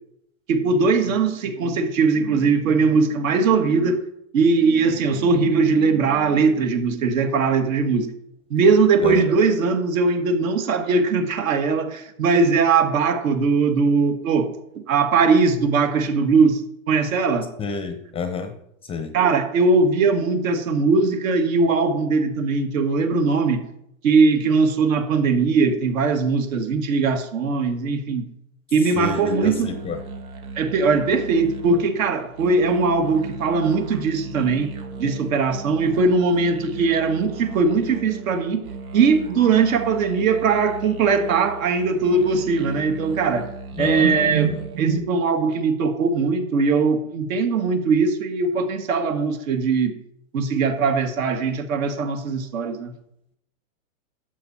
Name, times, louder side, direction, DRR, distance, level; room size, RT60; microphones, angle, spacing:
voice 1, 0.5-4.0 4.3-8.1 8.5-14.5 14.8-16.6 16.9-17.5 19.1-23.6 24.0-28.3 28.7-29.7 30.6-34.7 35.0-38.7 38.9-43.5 43.8-49.9 50.3-52.9, right 4 dB, 70° right, 6 dB, 1.9 m, -20 dB
voice 2, 17.6-18.5 18.9-19.1 28.9-30.0 43.8-44.1 44.5-44.6, left 5 dB, 15° left, 9 dB, 0.6 m, -29 dB
sound 1, 29.1-44.9, right 4 dB, 90° right, 1.8 m, -36 dB
12.5 x 7.8 x 4.3 m, 0.76 s
hypercardioid pair, 135°, 42 cm